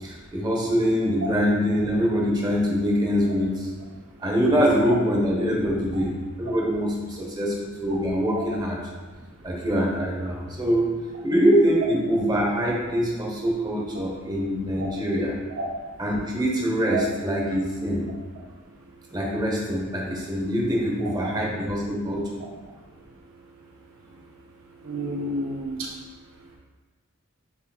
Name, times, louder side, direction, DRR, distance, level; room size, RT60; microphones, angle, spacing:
voice 1, 0.0-3.7 4.2-6.1 6.4-7.5 7.8-8.8 9.4-10.9 11.2-15.3 16.0-18.0 19.1-22.2, equal, 20° right, -2 dB, 0.8 m, -24 dB
voice 2, 24.8-25.9, right 2 dB, 65° right, 0 dB, 0.6 m, -29 dB
6.8 x 3.0 x 2.3 m, 1.3 s
head